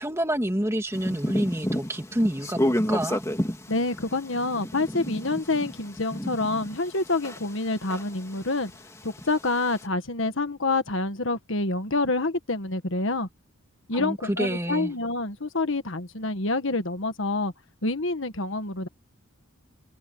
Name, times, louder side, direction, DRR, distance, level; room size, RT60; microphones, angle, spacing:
voice 1, 0.0-3.2 13.9-14.9, right 1 dB, 15° right, 2.2 m, -28 dB
sound 1, 0.9-7.6 7.9-9.8, equal, 15° left, 2.8 m, -30 dB
voice 2, 3.7-8.7 9.0-13.3 13.9-17.5 17.8-18.9, left 2 dB, 60° left, 1.6 m, -27 dB
head